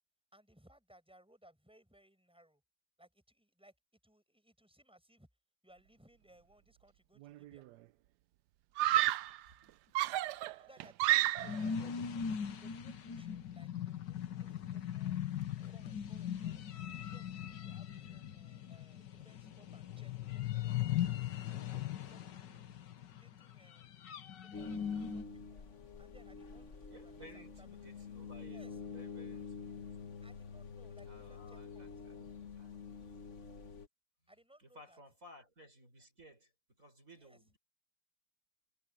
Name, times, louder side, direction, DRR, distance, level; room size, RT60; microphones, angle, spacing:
voice 1, 0.3-2.6 3.0-3.7 4.0-5.3 5.6-7.7 10.5-15.2 15.6-16.7 17.0-21.0 21.5-23.9 24.4-25.6 26.0-27.9 28.4-28.8 30.2-31.9 34.3-35.0 37.1-37.4, right 1 dB, 5° right, 7.7 m, -64 dB
Screaming, 7.2-7.7 8.8-9.4 9.9-11.7, right 14 dB, 75° right, 1.1 m, -31 dB
voice 2, 9.4-10.4 11.4-11.5 17.8-18.3 22.4-22.8 26.9-30.1 31.0-33.0 34.6-37.6, equal, 50° right, 6.6 m, -59 dB
sound 1, 11.4-25.2, left 9 dB, 85° left, 1.8 m, -39 dB
sound 2, 24.5-33.9, left 5 dB, 45° left, 1.6 m, -48 dB
omnidirectional pair, 1.9 m